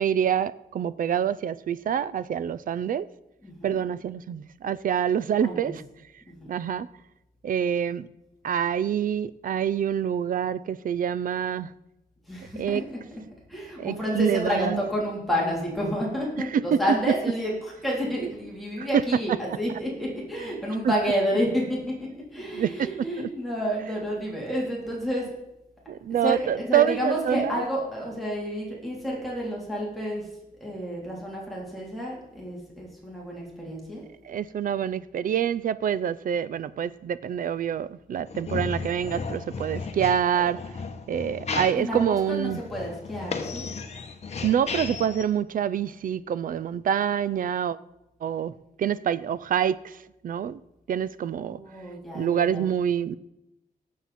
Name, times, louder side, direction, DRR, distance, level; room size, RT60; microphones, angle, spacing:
voice 1, 0.0-3.1 3.6-5.7 6.5-6.9 7.4-8.1 8.4-11.7 12.6-12.8 13.8-14.8 16.7-16.8 18.8-18.9 22.5-22.9 23.2-23.3 25.9-27.5 34.3-40.6 41.1-42.6 44.4-47.8 48.2-48.5 48.8-50.6 50.9-51.6 52.1-53.2, right 9 dB, 60° right, 17 dB, 0.5 m, -26 dB
voice 2, 3.4-3.8 5.4-5.8 6.3-6.5 12.2-13.2 13.5-25.3 26.1-30.3 30.6-34.0 41.8-43.7 51.2-52.7, equal, ahead, -5 dB, 3.4 m, -30 dB
sound 1, 38.3-45.2, left 4 dB, 45° left, 1.1 m, -34 dB
18.5 x 7.5 x 4.3 m, 0.88 s
wide cardioid pair, 150°, 16 cm